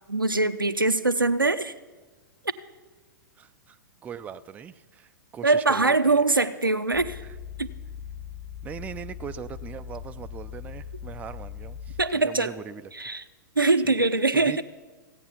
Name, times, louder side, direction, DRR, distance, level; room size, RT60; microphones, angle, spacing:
voice 1, 0.1-1.7 5.4-7.2 7.6-7.7 12.0-12.5 13.0-13.2 13.6-14.6, right 3 dB, 90° right, 9 dB, 0.6 m, -22 dB
voice 2, 3.4-6.5 8.6-12.9 13.8-14.1 14.3-14.6, right 7 dB, 15° right, 11 dB, 0.4 m, -40 dB
sound 1, 6.9-12.1, left 8 dB, 30° left, 1.8 m, -40 dB
16.5 x 8.8 x 5.8 m, 1.3 s
figure-of-eight pair, 110°, 11 cm